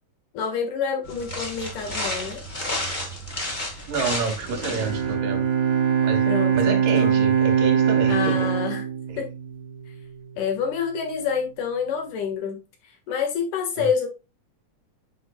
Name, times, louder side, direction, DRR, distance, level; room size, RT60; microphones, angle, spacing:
voice 1, 0.3-2.4 6.3-7.2 8.1-8.8 9.2-9.3 9.9-10.0 10.4-14.1, left 6 dB, 75° left, 3.1 m, -28 dB
sound 1, 1.0-5.1, left 1 dB, 25° left, 1.0 m, -31 dB
voice 2, 3.9-5.5 6.0-6.3 6.5-8.5 9.1-9.2 13.8-13.9, right 4 dB, 90° right, 3.2 m, -29 dB
Bowed string instrument, 4.4-9.8, right 7 dB, 50° right, 1.5 m, -22 dB
7.8 x 5.9 x 2.2 m
omnidirectional pair, 3.7 m